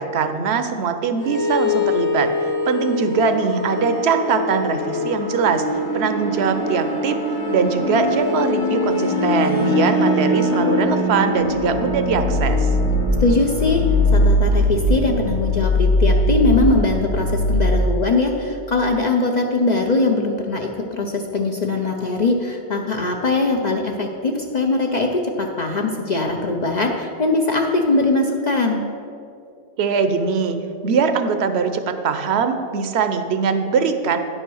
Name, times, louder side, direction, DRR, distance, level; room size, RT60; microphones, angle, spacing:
voice 1, 0.0-2.3 2.7-5.6 5.9-7.2 7.5-12.7 29.8-30.6 30.8-34.2, right 5 dB, 65° right, 8 dB, 0.9 m, -21 dB
sound 1, 1.2-17.8, left 1 dB, 75° left, 2.0 m, -21 dB
voice 2, 13.2-13.8 14.1-28.8, left 3 dB, 45° left, 2 dB, 0.6 m, -21 dB
10.0 x 5.5 x 6.2 m, 2.5 s
omnidirectional pair, 1.2 m